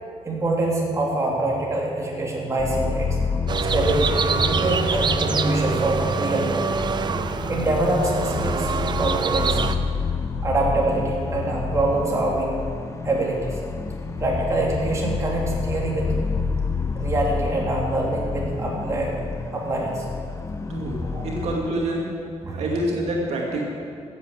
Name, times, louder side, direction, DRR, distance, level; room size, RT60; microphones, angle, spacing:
voice 1, 0.2-3.2 3.7-6.7 7.5-8.7 9.0-9.6 10.4-12.6 13.0-13.6 14.2-16.1 16.9-19.1 19.5-20.1 21.0-21.3 22.4-22.6, right 2 dB, 25° right, -3 dB, 3.1 m, -25 dB
sound 1, 2.6-21.6, left 4 dB, 25° left, 0.9 m, -29 dB
sound 2, 3.5-9.8, right 5 dB, 40° right, 0.6 m, -25 dB
voice 2, 20.7-22.1 22.5-23.6, right 1 dB, 70° right, -2 dB, 2.4 m, -26 dB
14.5 x 8.1 x 8.3 m, 2.4 s
cardioid pair, 125°, 11 cm